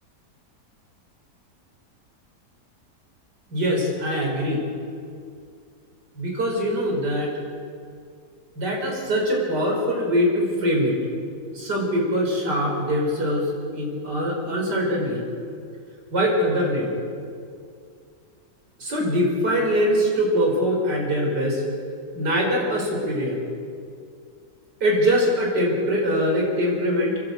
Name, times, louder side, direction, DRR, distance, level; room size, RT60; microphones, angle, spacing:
voice 1, 3.5-4.6 6.1-7.4 8.6-11.0 11.5-15.3 16.1-16.9 18.8-21.6 22.1-23.4 24.8-27.2, equal, 75° right, -1 dB, 5.3 m, -23 dB
29.5 x 11.5 x 8.1 m, 2.3 s
omnidirectional pair, 1.8 m